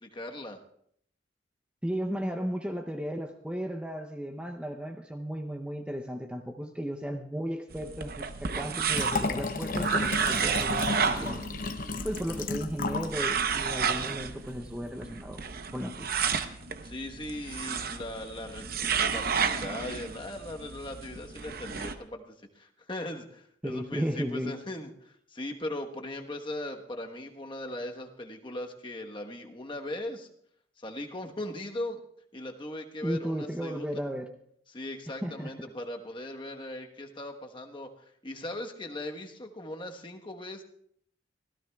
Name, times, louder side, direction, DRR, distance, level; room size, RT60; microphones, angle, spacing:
voice 1, 0.0-0.6 16.8-30.3 30.8-32.0 32.3-34.0 34.7-37.9 38.2-40.6, left 1 dB, 25° left, 3 dB, 1.2 m, -39 dB
voice 2, 1.8-11.5 12.0-15.4 15.7-16.3 23.6-24.6 33.0-34.3 35.2-35.5, equal, 5° right, 4 dB, 0.6 m, -35 dB
sound 1, 7.7-21.9, right 6 dB, 55° right, 0.8 m, -32 dB
Liquid, 8.9-13.2 13.5-13.6, left 3 dB, 50° left, 0.8 m, -33 dB
25.0 x 16.0 x 2.3 m, 0.68 s
head